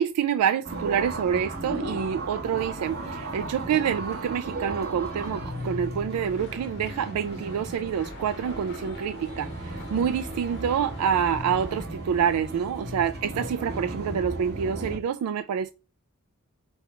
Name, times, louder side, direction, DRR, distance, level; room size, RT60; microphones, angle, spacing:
voice 1, 0.0-15.7, right 8 dB, 80° right, 0.3 m, -27 dB
sound 1, 0.6-15.0, right 2 dB, 45° right, 1.5 m, -35 dB
sound 2, 6.1-11.9, left 5 dB, 55° left, 0.7 m, -48 dB
5.3 x 2.3 x 4.3 m
head